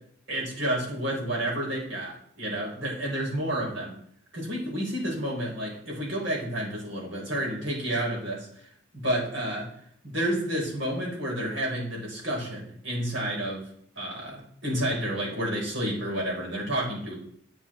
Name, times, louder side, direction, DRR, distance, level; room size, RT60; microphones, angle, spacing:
voice 1, 0.3-3.9 4.3-8.5 8.9-9.7 10.0-13.6 14.0-17.1, right 1 dB, 80° right, -3 dB, 4.6 m, -30 dB
8.9 x 8.8 x 4.4 m, 0.65 s
head